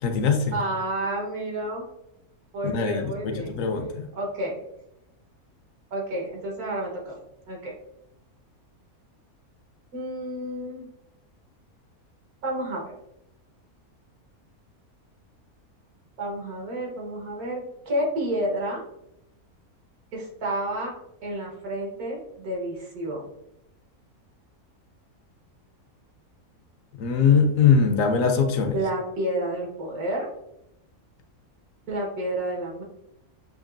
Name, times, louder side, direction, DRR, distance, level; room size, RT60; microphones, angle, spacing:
voice 1, 0.0-0.6 2.6-4.1 27.0-28.8, left 6 dB, 70° left, 6 dB, 1.0 m, -22 dB
voice 2, 0.5-1.8 2.5-3.5 4.2-4.6 5.9-7.2 7.5-7.7 9.9-10.9 12.4-12.9 16.2-18.8 20.1-20.9 21.2-23.2 28.7-30.3 31.9-32.8, right 1 dB, 90° right, -1 dB, 1.7 m, -30 dB
7.1 x 2.8 x 2.5 m, 0.83 s
omnidirectional pair, 1.5 m